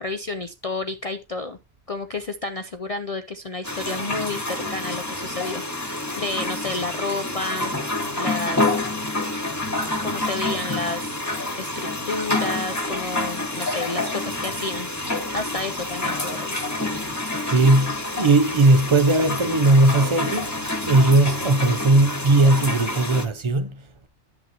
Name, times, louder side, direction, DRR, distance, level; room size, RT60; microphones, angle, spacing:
voice 1, 0.0-1.6 1.9-7.7 8.2-8.7 10.0-11.2 11.6-16.8, left 3 dB, 50° left, 0.4 m, -31 dB
sound 1, 3.6-23.3, left 2 dB, 15° left, 1.2 m, -28 dB
voice 2, 17.5-24.1, right 2 dB, 40° right, 0.4 m, -18 dB
10.5 x 7.7 x 2.8 m
omnidirectional pair, 1.2 m